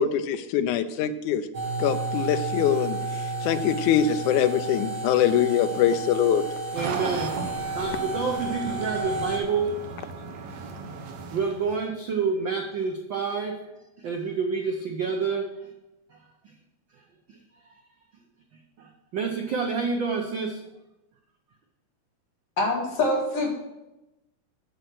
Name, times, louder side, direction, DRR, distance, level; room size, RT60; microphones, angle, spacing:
voice 1, 0.0-1.4 1.8-3.0 3.4-6.4, left 9 dB, 80° left, 10 dB, 2.1 m, -23 dB
sound 1, 1.5-9.4, right 2 dB, 40° right, 1.5 m, -32 dB
sound 2, 6.7-11.9, right 4 dB, 70° right, 2.2 m, -36 dB
voice 2, 6.7-7.3 7.7-9.8 10.3-10.7 11.3-13.6 14.0-15.5 16.1-16.2 17.3-17.4 18.8-20.6, right 5 dB, 85° right, 2 dB, 1.0 m, -28 dB
voice 3, 22.6-23.5, left 2 dB, 55° left, -1 dB, 2.9 m, -24 dB
8.1 x 7.8 x 6.1 m, 0.96 s
omnidirectional pair, 3.5 m